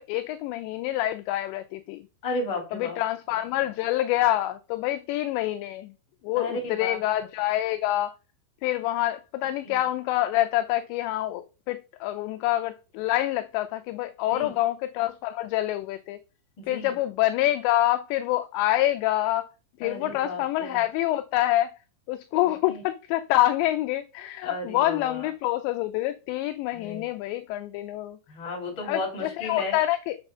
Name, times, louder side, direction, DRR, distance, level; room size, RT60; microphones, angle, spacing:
voice 1, 0.0-2.1 2.7-5.9 6.2-8.1 8.6-16.2 16.7-19.5 19.8-21.8 22.1-28.2 28.8-30.2, left 15 dB, 80° left, 2.7 m, -26 dB
voice 2, 2.2-3.0 6.4-7.0 9.6-9.8 14.3-14.5 16.6-17.0 19.8-20.8 22.4-22.8 24.4-25.3 26.7-27.0 28.3-29.8, left 2 dB, 30° left, 3.3 m, -34 dB
7.5 x 5.4 x 6.0 m
omnidirectional pair, 5.4 m